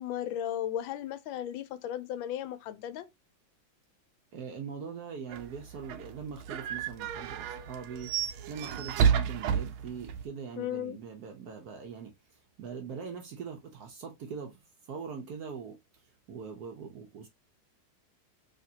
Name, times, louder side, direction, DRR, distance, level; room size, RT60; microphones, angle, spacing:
voice 1, 0.0-3.1 10.6-11.0, left 11 dB, 80° left, 1.3 m, -35 dB
voice 2, 4.3-8.1 8.5-12.1 12.6-14.6 14.9-15.8 16.3-17.3, right 6 dB, 70° right, 0.9 m, -42 dB
sound 1, 5.3-10.3, right 8 dB, 85° right, 1.4 m, -31 dB
3.4 x 3.3 x 2.7 m
omnidirectional pair, 2.2 m